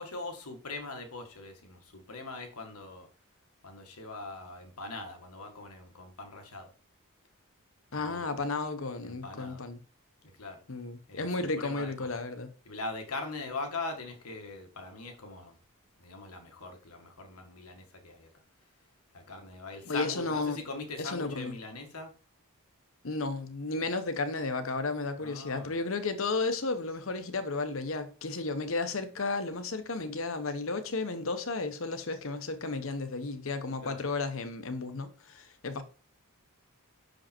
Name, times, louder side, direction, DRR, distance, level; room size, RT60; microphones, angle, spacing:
voice 1, 0.0-3.1 3.6-6.7 7.9-8.5 9.0-9.6 10.2-10.6 11.1-12.2 12.7-15.6 16.0-18.3 19.1-22.1 25.2-25.8 33.7-34.1, left 3 dB, 90° left, 1.7 m, -41 dB
voice 2, 7.9-9.8 10.7-12.5 19.9-20.6 21.0-21.5 23.0-35.8, left 3 dB, 60° left, 1.0 m, -33 dB
6.5 x 5.3 x 4.3 m
head